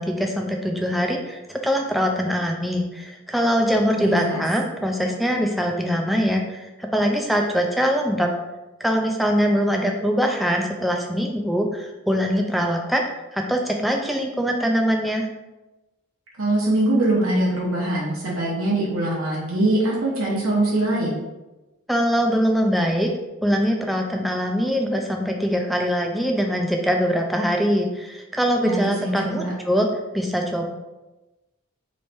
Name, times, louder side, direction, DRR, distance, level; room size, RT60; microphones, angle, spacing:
voice 1, 0.0-8.3 8.8-13.0 13.3-15.3 21.9-23.1 23.4-29.9 30.1-30.7, equal, ahead, 1 dB, 0.3 m, -22 dB
voice 2, 4.1-4.4 16.4-21.2 28.6-29.5, right 1 dB, 70° right, -5 dB, 0.9 m, -22 dB
3.2 x 3.1 x 4.2 m, 1.1 s
head